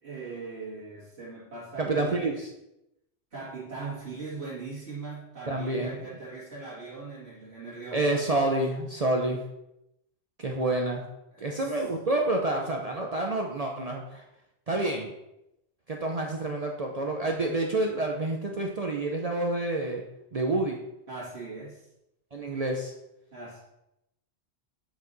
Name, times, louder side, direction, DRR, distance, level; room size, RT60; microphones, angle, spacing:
voice 1, 0.0-2.2 3.3-8.4 11.3-11.8 21.1-21.9 23.3-23.6, right 4 dB, 75° right, -8 dB, 2.2 m, -40 dB
voice 2, 1.8-2.5 5.5-6.0 7.9-9.4 10.4-11.0 11.4-14.2 14.7-15.1 15.9-20.0 20.3-20.8 22.3-22.9, right 2 dB, 40° right, 1 dB, 0.7 m, -28 dB
8.1 x 4.8 x 4.0 m, 0.86 s
omnidirectional pair, 1.1 m